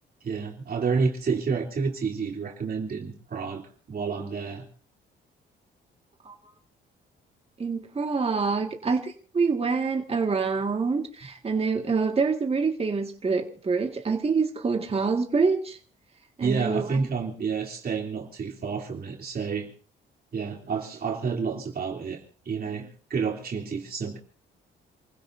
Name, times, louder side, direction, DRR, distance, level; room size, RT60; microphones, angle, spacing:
voice 1, 0.2-4.7 16.4-19.7 20.3-24.2, right 5 dB, 50° right, 3.2 m, -29 dB
voice 2, 7.6-15.8 16.4-17.0, right 4 dB, 30° right, 1.9 m, -26 dB
28.5 x 16.0 x 2.7 m
cardioid pair, 90°, 20 cm